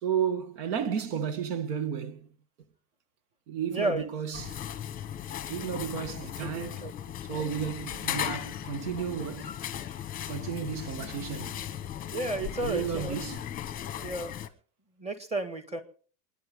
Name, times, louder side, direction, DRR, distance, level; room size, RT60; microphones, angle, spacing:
voice 1, 0.0-2.3 3.5-4.6 5.5-6.8 7.3-9.6 10.3-11.6 12.6-13.4, right 8 dB, 70° right, 2.0 m, -33 dB
voice 2, 3.7-4.0 6.4-6.9 12.1-13.2 14.0-14.3 15.0-15.8, right 2 dB, 15° right, 1.8 m, -32 dB
sound 1, 4.3-14.5, left 10 dB, 20° left, 1.0 m, -37 dB
28.0 x 10.5 x 3.7 m
supercardioid pair, 160°, 48 cm